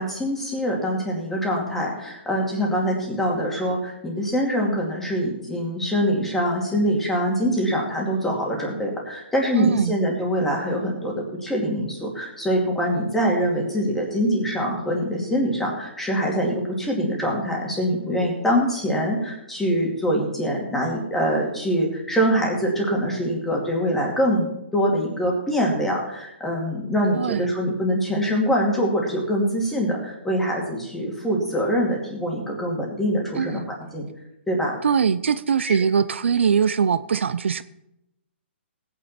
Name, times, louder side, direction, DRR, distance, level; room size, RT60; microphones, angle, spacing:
voice 1, 0.0-33.6 33.9-34.0 34.5-34.8 35.6-35.8, equal, 5° left, -2 dB, 2.4 m, -24 dB
voice 2, 9.6-10.0 27.1-27.5 33.4-33.7 34.8-37.6, right 6 dB, 70° right, 14 dB, 0.6 m, -22 dB
18.0 x 8.8 x 4.4 m, 0.84 s
hypercardioid pair, 165°, 7 cm